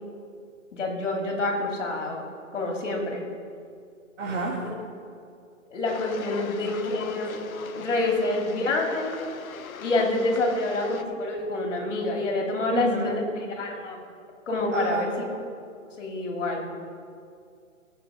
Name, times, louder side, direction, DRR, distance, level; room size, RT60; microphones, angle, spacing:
voice 1, 0.7-2.2 2.5-3.2 4.7-4.8 5.7-7.4 7.7-9.2 9.8-13.2 13.6-14.0 14.5-15.1 16.0-16.7, left 2 dB, 60° left, 0 dB, 2.9 m, -27 dB
voice 2, 4.2-4.7 6.1-7.0 7.5-7.6 8.2-8.5 10.2-10.3 12.7-13.5 14.7-15.2, right 3 dB, 60° right, -5 dB, 2.4 m, -32 dB
sound 1, 5.8-11.0, left 7 dB, 85° left, 0.9 m, -41 dB
17.5 x 7.1 x 5.1 m, 2.3 s
hypercardioid pair, 155°, 41 cm